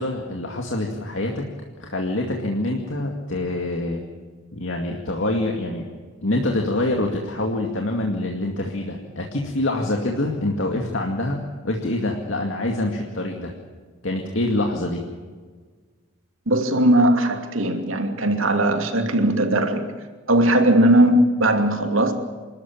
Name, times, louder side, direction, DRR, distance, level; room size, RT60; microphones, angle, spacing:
voice 1, 0.0-1.4 1.8-4.0 4.5-5.9 6.2-11.4 11.6-13.5 14.0-15.0, left 1 dB, 65° left, 1 dB, 2.3 m, -25 dB
voice 2, 16.5-19.9 20.3-22.1, right 1 dB, 80° right, 5 dB, 2.6 m, -18 dB
27.5 x 13.5 x 8.8 m, 1.5 s
head